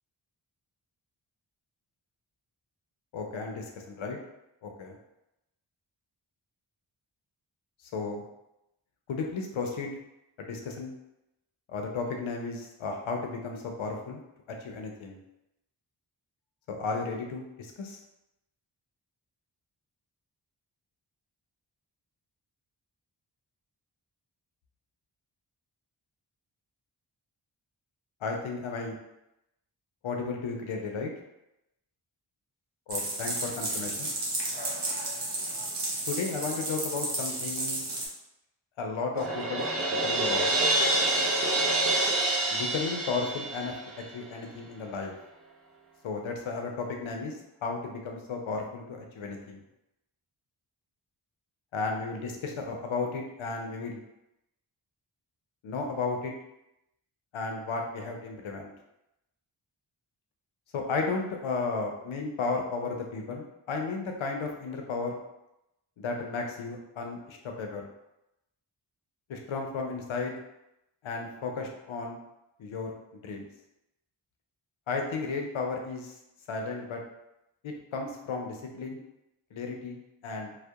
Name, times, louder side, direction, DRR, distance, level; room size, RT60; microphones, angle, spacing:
voice 1, 3.1-4.2 4.6-5.0 7.9-8.3 9.1-10.0 10.4-10.9 11.7-14.2 14.5-15.2 16.7-18.0 28.2-28.9 30.0-31.1 32.9-34.1 36.1-37.9 38.8-40.5 42.5-45.1 46.0-47.4 47.6-49.6 51.7-54.0 55.6-56.3 57.3-58.7 60.7-65.2 66.0-67.9 69.3-70.4 71.0-72.2 72.6-73.0 73.2-73.5 74.9-76.1 76.5-77.0 77.6-79.0 79.5-80.5, left 4 dB, 80° left, 2 dB, 0.6 m, -34 dB
sound 1, 32.9-38.1, right 2 dB, 55° right, 0.8 m, -33 dB
Crash cymbal, 39.2-44.1, right 2 dB, 30° right, 0.5 m, -27 dB
2.7 x 2.1 x 2.3 m, 0.88 s
cardioid pair, 50°, 47 cm